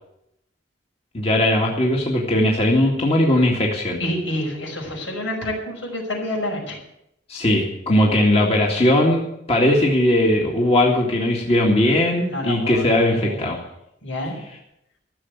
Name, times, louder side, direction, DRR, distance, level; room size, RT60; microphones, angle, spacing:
voice 1, 1.1-4.0 7.3-9.2 9.5-13.6, left 1 dB, 30° left, -1 dB, 2.1 m, -19 dB
voice 2, 4.0-6.8 12.3-13.4 14.0-14.4, left 1 dB, 90° left, 0 dB, 5.7 m, -28 dB
15.0 x 7.0 x 9.6 m, 0.81 s
head